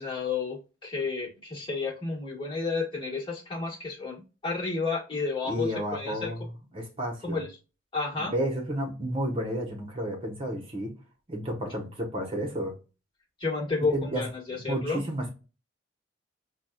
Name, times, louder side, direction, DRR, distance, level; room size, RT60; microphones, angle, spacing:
voice 1, 0.0-6.3 7.2-7.5 7.9-8.3 13.4-15.0, left 4 dB, 25° left, 1.5 m, -31 dB
voice 2, 5.4-7.4 8.2-10.9 11.3-12.7 13.9-14.2 14.5-15.3, right 1 dB, 30° right, 1.0 m, -32 dB
5.9 x 2.3 x 2.3 m
head